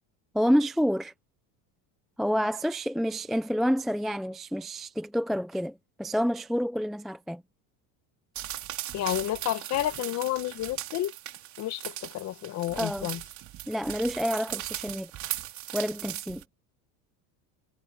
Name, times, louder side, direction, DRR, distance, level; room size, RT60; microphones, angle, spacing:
voice 1, 0.3-1.1 2.2-7.4 12.8-13.1 13.7-15.1 15.7-16.4, equal, ahead, 0.3 m, -28 dB
sound 1, 8.4-16.4, right 13 dB, 45° right, 3.4 m, -38 dB
voice 2, 8.9-11.1 11.6-13.2, left 14 dB, 40° left, 1.2 m, -30 dB
cardioid pair, 145°, 42 cm